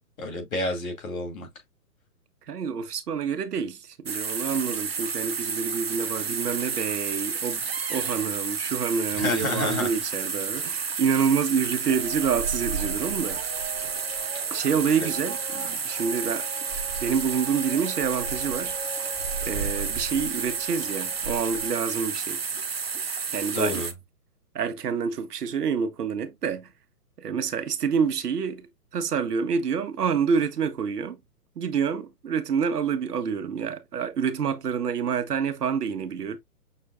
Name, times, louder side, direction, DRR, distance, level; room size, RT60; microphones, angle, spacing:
voice 1, 0.2-1.5 9.2-9.9 15.0-15.1 23.5-23.9, left 3 dB, 60° left, 2.4 m, -29 dB
voice 2, 2.5-13.4 14.5-16.5 17.0-18.8 19.4-22.5 23.3-23.8 24.5-26.7 27.2-31.2 31.6-36.4, right 6 dB, 75° right, 1.1 m, -27 dB
sound 1, 4.1-23.9, right 5 dB, 45° right, 0.4 m, -31 dB
sound 2, 11.9-21.7, right 4 dB, 20° right, 0.9 m, -37 dB
6.1 x 3.4 x 2.4 m
hypercardioid pair, 175°, 47 cm